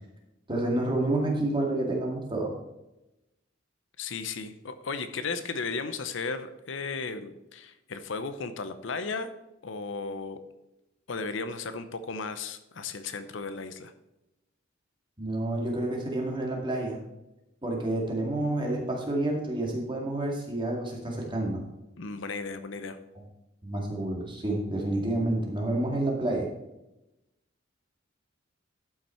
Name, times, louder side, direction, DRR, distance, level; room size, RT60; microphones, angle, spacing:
voice 1, 0.5-2.5 15.2-17.0 17.6-21.6 23.6-26.5, right 1 dB, 25° right, -1 dB, 2.1 m, -29 dB
voice 2, 4.0-9.3 9.6-10.4 11.1-13.9 22.0-23.0, left 4 dB, 70° left, 10 dB, 0.7 m, -35 dB
12.0 x 5.9 x 4.4 m, 0.94 s
head